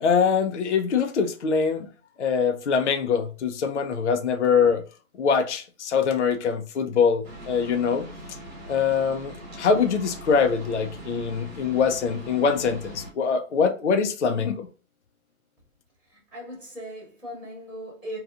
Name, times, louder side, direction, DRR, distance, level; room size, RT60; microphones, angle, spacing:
voice 1, 0.0-1.9 2.2-4.8 5.2-8.1 8.7-14.7, left 6 dB, 55° left, 0.4 m, -23 dB
sound 1, 7.2-13.1, right 1 dB, 45° right, 0.8 m, -41 dB
voice 2, 16.0-18.2, equal, 5° right, 0.6 m, -39 dB
2.7 x 2.3 x 2.4 m
hypercardioid pair, 170°, 44 cm